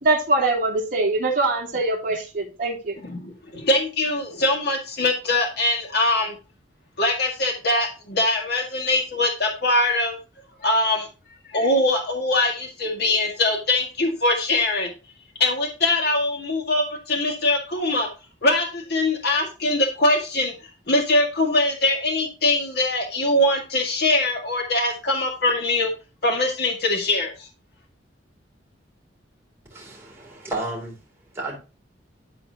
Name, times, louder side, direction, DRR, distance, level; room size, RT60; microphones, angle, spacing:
voice 1, 0.0-3.0, right 2 dB, 45° right, -5 dB, 3.0 m, -23 dB
voice 2, 3.0-6.4 7.0-10.2 10.6-11.1 11.5-14.9 15.4-18.1 18.4-20.5 20.9-25.9 26.2-27.5, left 2 dB, 60° left, 2 dB, 1.9 m, -22 dB
voice 3, 29.7-31.0 31.3-31.6, right 2 dB, 15° right, -3 dB, 3.5 m, -32 dB
13.0 x 4.3 x 2.8 m, 0.32 s
head